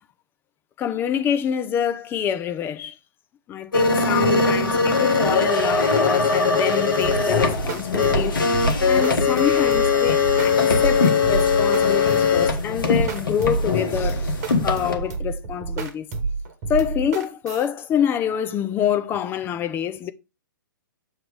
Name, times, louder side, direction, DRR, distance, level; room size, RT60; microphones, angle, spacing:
voice 1, 0.8-2.9 3.5-8.4 8.9-14.3 14.6-16.1 16.7-20.1, left 9 dB, 20° left, 0.5 m, -26 dB
sound 1, 3.7-14.9, left 4 dB, 70° left, 1.2 m, -20 dB
sound 2, 7.0-17.7, right 4 dB, 45° right, 1.2 m, -29 dB
7.2 x 3.0 x 4.9 m
figure-of-eight pair, 115°, 11 cm